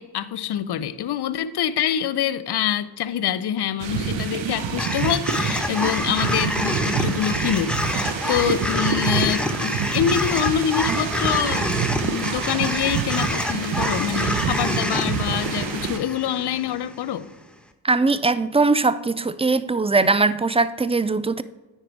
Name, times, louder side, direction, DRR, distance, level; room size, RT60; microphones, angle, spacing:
voice 1, 0.0-11.7 12.0-17.3, left 9 dB, 55° left, 0.7 m, -25 dB
sound 1, 3.8-16.0, right 7 dB, 65° right, 0.9 m, -28 dB
sound 2, 4.8-17.1, left 1 dB, ahead, 0.9 m, -27 dB
voice 2, 17.8-21.4, right 3 dB, 15° right, 0.4 m, -20 dB
9.7 x 4.3 x 4.7 m
hypercardioid pair, 40°, 48 cm